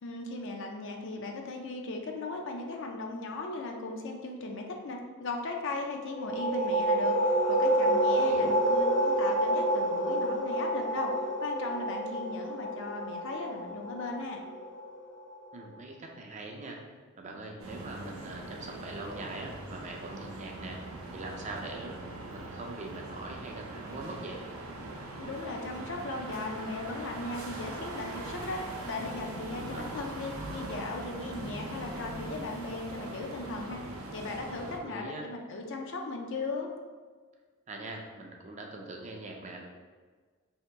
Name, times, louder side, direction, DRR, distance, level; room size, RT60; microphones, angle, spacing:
voice 1, 0.0-11.1 11.4-14.4 25.2-33.8 34.1-36.7, left 3 dB, 60° left, 2 dB, 0.5 m, -37 dB
sound 1, 6.0-15.4, right 1 dB, 85° left, 1.3 m, -28 dB
voice 2, 8.1-8.5 15.5-16.8 17.2-20.8 21.1-22.0 22.3-24.4 29.5-29.9 34.8-35.3 37.7-39.6, right 2 dB, 35° right, 1 dB, 0.5 m, -42 dB
sound 2, 17.6-34.8, right 2 dB, 75° right, 0.6 m, -41 dB
2.9 x 2.8 x 4.4 m, 1.5 s
head